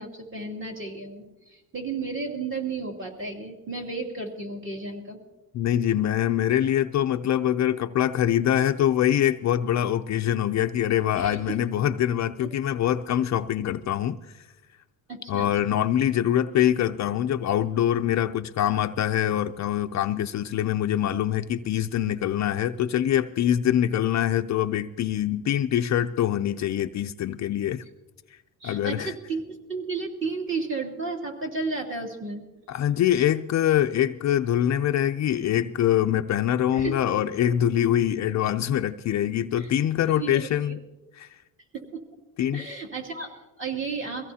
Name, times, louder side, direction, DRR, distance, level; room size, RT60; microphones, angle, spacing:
voice 1, 0.0-5.2 11.2-11.6 15.1-15.8 28.6-32.4 36.7-37.0 39.6-39.7 40.1-40.7 41.7-42.0 42.5-44.3, right 4 dB, 35° right, 1 dB, 2.6 m, -33 dB
voice 2, 5.5-14.2 15.3-27.8 28.6-29.1 32.7-40.8 41.2-41.3 42.4-42.7, left 11 dB, 50° left, 9 dB, 0.5 m, -24 dB
23.5 x 16.5 x 2.8 m, 1.1 s
cardioid pair, 130°, 38 cm